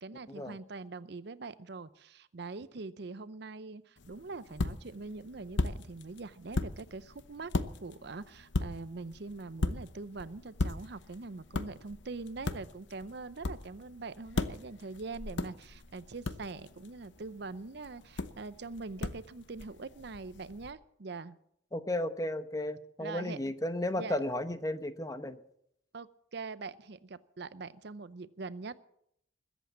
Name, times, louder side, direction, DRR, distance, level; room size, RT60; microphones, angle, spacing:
voice 1, 0.0-7.5 7.8-21.4 23.0-23.6 23.9-24.2 25.9-28.8, right 3 dB, 60° right, 15 dB, 0.6 m, -43 dB
sound 1, 4.0-20.7, left 2 dB, 70° left, 0.9 m, -38 dB
voice 2, 21.7-25.4, left 1 dB, 20° left, 10 dB, 0.9 m, -34 dB
21.0 x 8.2 x 7.3 m, 0.73 s
head